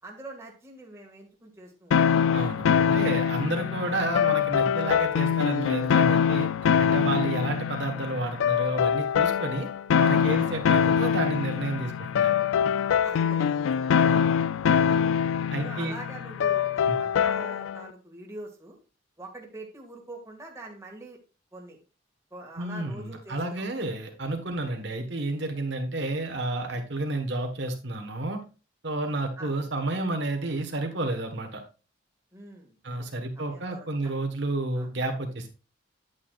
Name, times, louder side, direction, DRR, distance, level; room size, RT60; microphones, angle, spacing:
voice 1, 0.0-2.0 2.8-3.0 3.8-3.9 10.4-10.6 12.9-14.1 14.9-15.1 15.6-18.8 19.2-21.2 21.5-21.8 22.3-23.7 24.6-24.7 29.4-29.5 32.3-33.1 33.4-34.1 34.7-34.9, right 2 dB, 15° right, 0 dB, 1.9 m, -44 dB
sound 1, 1.9-17.8, left 7 dB, 90° left, 0.3 m, -24 dB
voice 2, 2.3-6.5 6.8-9.7 10.0-12.4 14.0-14.3 15.5-15.9 16.9-17.0 22.6-28.4 28.8-31.6 32.8-35.5, right 2 dB, 65° right, 5 dB, 1.3 m, -31 dB
9.3 x 8.9 x 2.4 m, 0.33 s
head